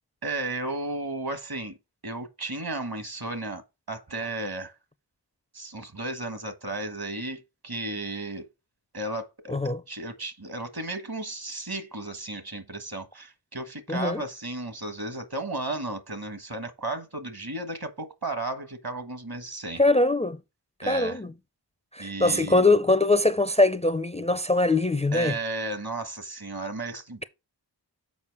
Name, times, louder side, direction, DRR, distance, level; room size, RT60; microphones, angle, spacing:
voice 1, 0.2-1.8 2.0-3.6 3.9-4.7 5.5-8.5 8.9-9.6 9.9-19.8 20.8-21.2 22.0-22.7 25.1-27.2, right 2 dB, 60° right, 1.4 m, -34 dB
voice 2, 9.5-9.8 13.9-14.2 19.8-20.4 20.9-21.3 21.9-25.4, left 2 dB, 15° left, 0.4 m, -22 dB
7.1 x 5.1 x 4.7 m
wide cardioid pair, 40°, 42 cm